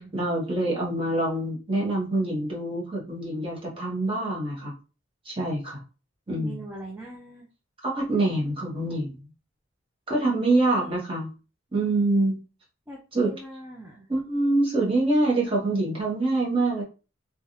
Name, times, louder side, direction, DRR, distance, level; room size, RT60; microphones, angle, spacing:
voice 1, 0.0-4.7 5.2-5.8 6.3-6.5 7.8-9.2 10.1-11.3 11.7-12.4 13.1-13.3 14.1-16.8, right 2 dB, 25° right, -5 dB, 1.2 m, -25 dB
voice 2, 6.3-7.5 10.4-11.0 12.9-14.1, right 1 dB, 10° right, -3 dB, 0.5 m, -40 dB
3.4 x 2.4 x 2.7 m, 0.34 s
head